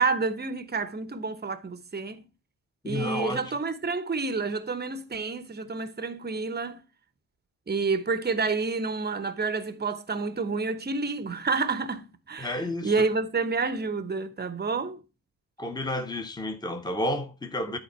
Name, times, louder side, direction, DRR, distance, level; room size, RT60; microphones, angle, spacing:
voice 1, 0.0-2.2 2.8-6.8 7.7-15.0, right 4 dB, 20° right, 1.0 m, -29 dB
voice 2, 2.8-3.5 12.4-13.1 15.6-17.8, left 1 dB, 10° left, 1.1 m, -31 dB
11.0 x 4.4 x 4.4 m
hypercardioid pair, 40°, 50 cm